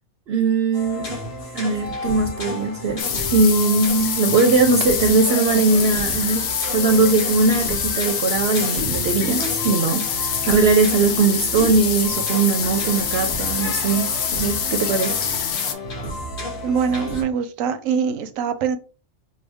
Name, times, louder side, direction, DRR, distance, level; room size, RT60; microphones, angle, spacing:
voice 1, 0.3-1.2 1.5-6.4 6.7-15.2, right 4 dB, 60° right, 0.7 m, -20 dB
sound 1, 0.7-17.2, equal, 45° left, 1.4 m, -32 dB
sound 2, 3.0-15.7, left 7 dB, 70° left, 1.0 m, -25 dB
voice 2, 16.6-18.8, right 6 dB, 90° right, 1.0 m, -23 dB
5.7 x 2.2 x 3.4 m
omnidirectional pair, 1.3 m